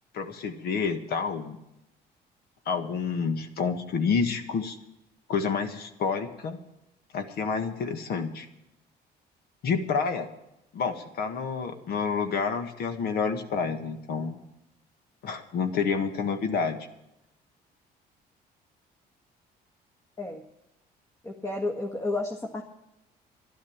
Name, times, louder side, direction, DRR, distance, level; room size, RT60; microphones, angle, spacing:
voice 1, 0.1-1.6 2.7-4.8 5.3-6.6 7.1-8.5 9.6-10.3 10.7-14.4 15.2-16.8, left 5 dB, 65° left, 7 dB, 1.8 m, -29 dB
voice 2, 21.2-22.6, left 2 dB, 20° left, 1 dB, 1.6 m, -31 dB
12.0 x 11.5 x 7.3 m, 0.87 s
cardioid pair, 110°, 17 cm